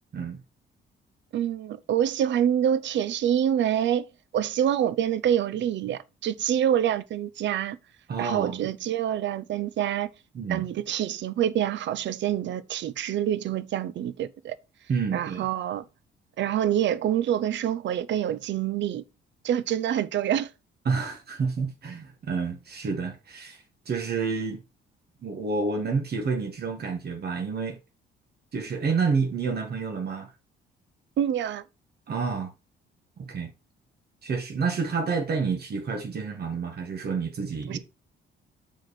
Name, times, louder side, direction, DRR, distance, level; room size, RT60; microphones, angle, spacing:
voice 1, 1.3-4.1 4.3-7.8 8.2-10.1 10.5-14.6 15.1-15.8 16.4-19.0 19.4-20.5 31.2-31.6 37.7-37.8, right 10 dB, 70° right, 0.6 m, -26 dB
voice 2, 8.1-8.7 10.3-10.7 14.9-15.5 20.9-23.6 23.9-24.6 25.2-27.8 28.5-30.3 32.1-32.5 33.2-33.5 34.2-37.8, right 5 dB, 55° right, 1.9 m, -29 dB
6.0 x 4.9 x 4.4 m
cardioid pair, 90°, 20 cm